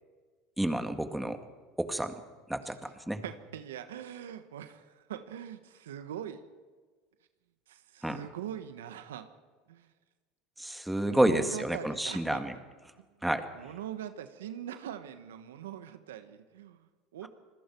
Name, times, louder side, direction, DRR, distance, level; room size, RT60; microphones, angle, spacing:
voice 1, 0.6-1.4 1.8-2.1 2.5-3.2 8.0-8.2 10.6-12.5 13.2-13.5, right 1 dB, 5° right, 7 dB, 2.1 m, -29 dB
voice 2, 3.2-6.5 7.7-9.3 9.7-9.9 11.0-12.4 13.0-13.1 13.5-17.3, right 10 dB, 90° right, 9 dB, 1.3 m, -42 dB
27.5 x 20.5 x 4.6 m, 1.4 s
hypercardioid pair, 95°, 0 cm